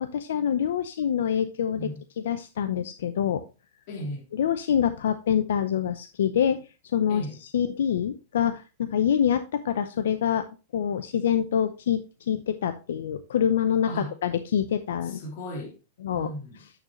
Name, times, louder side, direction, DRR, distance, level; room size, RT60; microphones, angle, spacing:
voice 1, 0.0-1.9 2.2-3.4 4.4-6.6 6.9-7.2 7.5-10.5 10.7-15.2 16.0-16.3, left 9 dB, 85° left, 0.7 m, -25 dB
voice 2, 3.9-4.2 7.1-7.4 13.9-14.1 15.0-15.8 16.1-16.6, equal, 55° left, 3.1 m, -36 dB
8.8 x 6.6 x 3.1 m
supercardioid pair, 145°, 0 cm